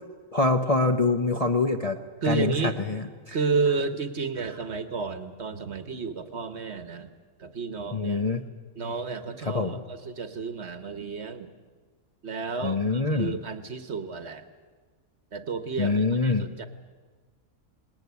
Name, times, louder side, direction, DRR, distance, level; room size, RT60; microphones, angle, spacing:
voice 1, 0.3-2.0 2.2-2.6 2.9-3.4 7.9-8.4 9.5-9.7 12.6-13.4 15.8-16.5, left 3 dB, 30° left, 4 dB, 0.8 m, -24 dB
voice 2, 2.2-2.8 3.3-7.1 7.4-8.2 8.8-11.5 12.2-14.4 15.3-16.7, right 4 dB, 50° right, 10 dB, 1.3 m, -31 dB
19.5 x 18.5 x 9.5 m, 1.4 s
omnidirectional pair, 1.5 m